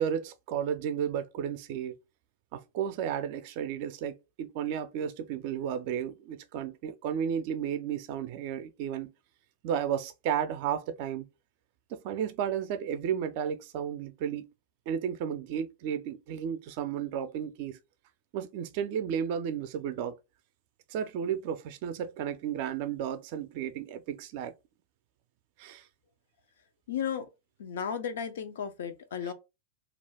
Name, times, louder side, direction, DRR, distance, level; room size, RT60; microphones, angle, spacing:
voice 1, 0.0-2.0 2.5-9.1 9.6-11.3 11.9-14.5 14.9-17.8 18.3-20.1 20.9-24.5 25.6-25.9 29.2-29.3, right 8 dB, 55° right, 0.4 m, -33 dB
voice 2, 26.9-27.3 27.6-29.3, left 8 dB, 75° left, 0.5 m, -34 dB
2.4 x 2.2 x 3.3 m
hypercardioid pair, 105°, 0 cm